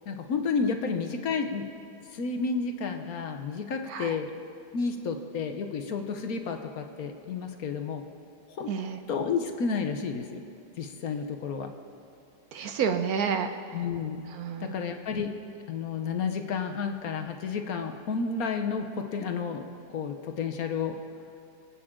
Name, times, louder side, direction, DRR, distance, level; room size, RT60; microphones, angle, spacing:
voice 1, 0.1-1.7 2.1-4.3 4.7-8.0 8.6-8.7 9.1-10.4 10.8-11.7 13.7-14.2 14.6-15.4 15.7-21.0, left 5 dB, 65° left, 5 dB, 1.3 m, -31 dB
voice 2, 8.7-9.0 12.5-13.6 14.4-14.7, right 7 dB, 70° right, 8 dB, 1.1 m, -29 dB
25.5 x 8.6 x 3.7 m, 2.7 s
omnidirectional pair, 1.8 m